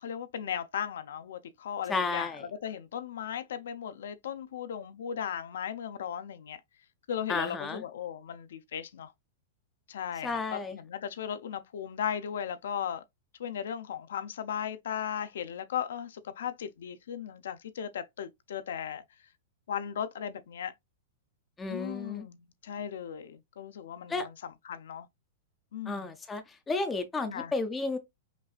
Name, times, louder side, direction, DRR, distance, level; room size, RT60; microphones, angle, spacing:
voice 1, 0.0-6.6 7.1-9.1 9.9-13.0 13.4-19.0 19.7-20.7 21.7-25.1 25.7-26.1 27.2-27.5, left 8 dB, 70° left, 0.6 m, -37 dB
voice 2, 1.9-2.4 7.3-7.8 10.2-10.7 21.6-22.3 24.1-24.3 25.9-26.4 26.7-28.0, left 3 dB, 10° left, 0.4 m, -32 dB
5.3 x 2.5 x 2.4 m
supercardioid pair, 180°, 0 cm